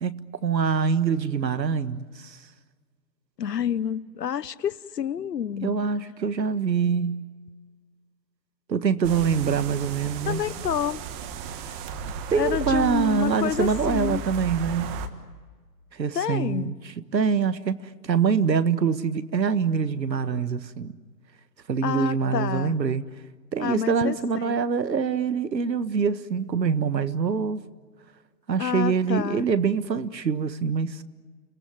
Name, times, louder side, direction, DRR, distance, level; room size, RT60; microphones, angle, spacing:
voice 1, 0.0-2.4 5.6-7.2 8.7-10.4 12.3-15.0 15.9-16.7 17.1-17.8 18.0-20.9 21.7-23.0 23.5-27.7 28.5-31.0, right 6 dB, 80° right, 1.6 m, -24 dB
voice 2, 3.4-5.8 10.3-11.0 12.4-14.2 16.1-16.7 21.8-22.8 23.6-24.6 28.6-29.5, left 9 dB, 75° left, 1.1 m, -28 dB
sound 1, 9.0-15.1, right 5 dB, 25° right, 1.5 m, -35 dB
29.5 x 18.5 x 9.7 m
hypercardioid pair, 135°, 50 cm